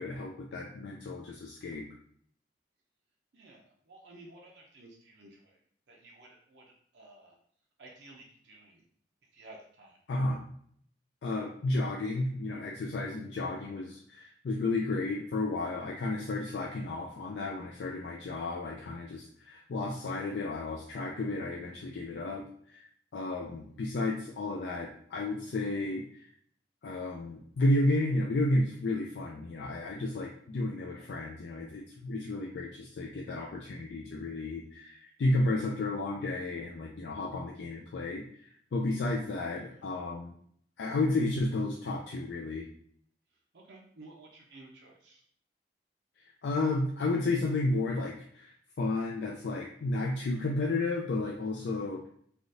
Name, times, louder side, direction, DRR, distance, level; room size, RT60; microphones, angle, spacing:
voice 1, 0.0-1.8 10.1-10.4 11.2-22.8 23.1-26.3 26.8-40.3 40.8-42.7 46.4-52.1, left 2 dB, 75° left, -1 dB, 0.4 m, -32 dB
voice 2, 3.3-5.6 5.9-7.4 7.8-8.8 9.3-10.0 23.6-23.8 31.0-31.1 39.5-39.8 43.5-45.2, right 2 dB, 70° right, -1 dB, 0.5 m, -54 dB
3.4 x 2.4 x 2.6 m, 0.63 s
head